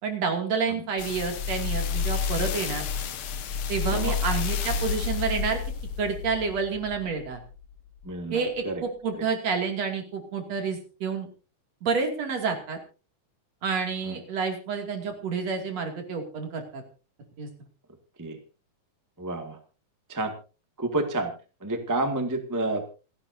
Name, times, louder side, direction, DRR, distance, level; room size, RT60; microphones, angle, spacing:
voice 1, 0.0-2.8 3.7-5.6 6.0-7.4 8.3-11.3 11.8-12.8 13.6-16.8 17.4-17.5, right 5 dB, 60° right, 3 dB, 3.7 m, -29 dB
sound 1, 1.0-7.5 8.0-8.1, left 6 dB, 60° left, 1.5 m, -30 dB
voice 2, 8.0-8.8 9.1-9.2 14.0-14.2 18.2-18.4 19.2-19.6 20.1-20.3 20.8-21.3 21.6-22.9, right 2 dB, 10° right, 4 dB, 1.4 m, -29 dB
28.0 x 10.0 x 2.8 m, 0.35 s
omnidirectional pair, 3.4 m